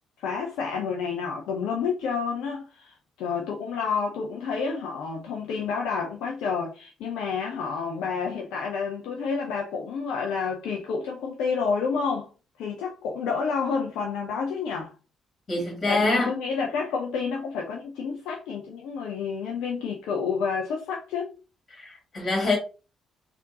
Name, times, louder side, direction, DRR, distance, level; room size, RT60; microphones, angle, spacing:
voice 1, 0.2-12.3 12.6-14.9 15.9-21.3, left 5 dB, 65° left, 0.5 m, -29 dB
voice 2, 15.5-16.3 21.8-22.6, left 3 dB, 40° left, 1.9 m, -25 dB
3.5 x 2.5 x 2.7 m
figure-of-eight pair, 40°, 0 cm